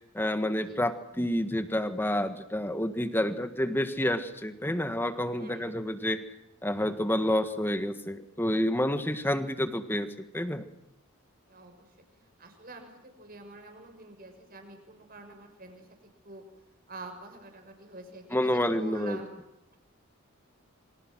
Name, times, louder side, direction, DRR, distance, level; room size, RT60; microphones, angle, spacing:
voice 1, 0.1-6.2 6.6-10.6 18.3-19.2, left 1 dB, 10° left, 9 dB, 1.6 m, -29 dB
voice 2, 5.4-5.8 11.5-11.9 12.4-16.4 16.9-19.3, right 2 dB, 40° right, 5 dB, 6.1 m, -46 dB
28.0 x 25.0 x 6.3 m, 0.87 s
head